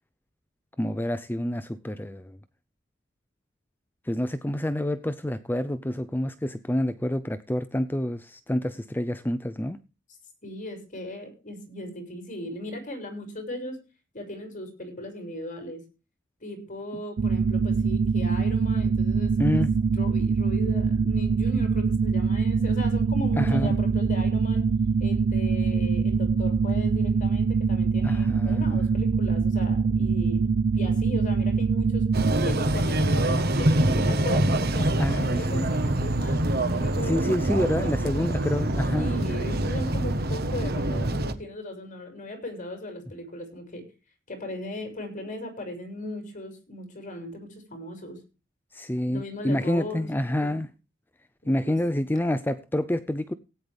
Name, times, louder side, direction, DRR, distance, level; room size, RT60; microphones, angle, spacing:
voice 1, 0.8-2.4 4.1-9.8 19.4-19.7 23.4-23.8 28.0-28.8 35.0-35.7 37.1-39.2 48.7-50.7 51.5-53.3, left 1 dB, 10° left, 0.5 m, -28 dB
voice 2, 10.4-13.8 14.1-15.8 16.4-24.6 25.0-32.1 32.4-37.2 37.8-38.3 39.0-43.8 44.3-48.2 49.1-50.6 51.4-52.0, left 1 dB, 40° left, 6.2 m, -37 dB
sound 1, 17.2-32.3, right 5 dB, 70° right, 0.6 m, -24 dB
sound 2, 32.1-41.3, right 1 dB, 55° right, 1.3 m, -25 dB
17.0 x 9.6 x 3.4 m
head